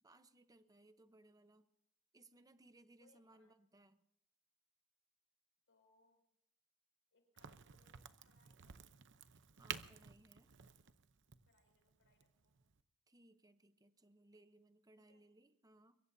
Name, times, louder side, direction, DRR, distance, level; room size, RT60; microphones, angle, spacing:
voice 1, 0.0-1.7 2.1-4.0 9.6-10.5 13.1-16.0, right 2 dB, 15° right, 10 dB, 0.8 m, -66 dB
voice 2, 3.0-3.6 5.7-6.2 7.1-8.8 11.5-12.6 15.1-15.2, left 2 dB, 60° left, 3 dB, 5.7 m, -75 dB
Crack, 7.4-12.8, right 9 dB, 55° right, 0.8 m, -52 dB
24.0 x 22.0 x 2.7 m, 0.74 s
head